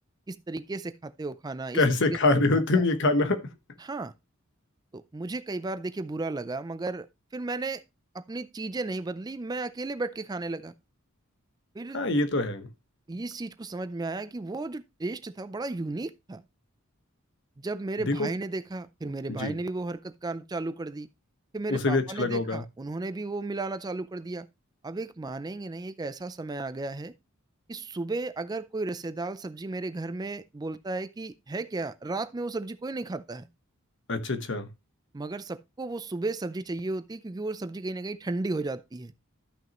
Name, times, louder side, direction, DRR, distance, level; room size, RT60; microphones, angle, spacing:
voice 1, 0.3-2.2 2.7-2.8 3.8-4.1 4.9-7.1 7.3-7.8 8.1-10.7 11.7-12.0 13.1-16.4 17.6-21.1 21.5-24.5 24.8-27.1 27.7-33.5 35.1-39.1, right 2 dB, 20° right, 0.4 m, -34 dB
voice 2, 1.7-3.4 11.9-12.7 18.1-18.3 19.4-19.5 21.7-22.6 34.1-34.7, left 2 dB, 55° left, 1.2 m, -24 dB
13.0 x 6.1 x 2.9 m
head